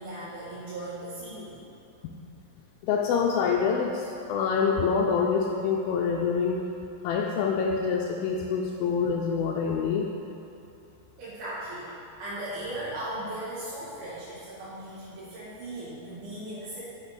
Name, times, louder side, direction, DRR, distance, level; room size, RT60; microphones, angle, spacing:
voice 1, 0.0-1.6 11.2-16.9, right 1 dB, 70° right, -12 dB, 3.6 m, -37 dB
voice 2, 2.8-6.6 7.0-10.1, left 6 dB, 80° left, 0 dB, 2.2 m, -26 dB
8.0 x 6.4 x 5.0 m, 2.8 s
omnidirectional pair, 4.5 m